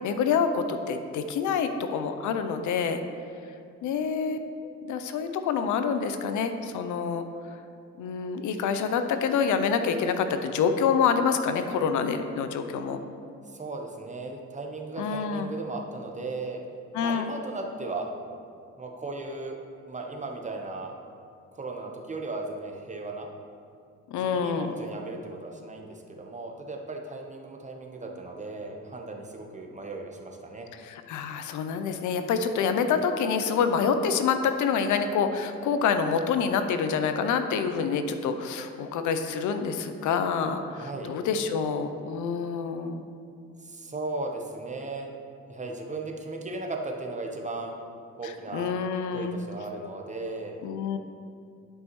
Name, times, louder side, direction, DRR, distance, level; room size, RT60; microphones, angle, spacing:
voice 1, 0.0-3.0 3.8-7.2 8.0-13.0 15.0-15.5 16.9-17.3 24.1-24.7 30.7-43.0 48.2-49.4 50.6-51.0, left 6 dB, 80° left, 8 dB, 0.6 m, -27 dB
voice 2, 13.5-16.6 16.9-18.1 18.8-19.6 19.9-21.0 21.5-23.3 24.1-30.7 40.7-41.1 43.6-45.1 45.5-47.8 48.2-48.8 49.1-50.6, right 3 dB, 25° right, 1 dB, 0.9 m, -36 dB
11.0 x 5.4 x 3.1 m, 2.4 s
cardioid pair, 90°, 30 cm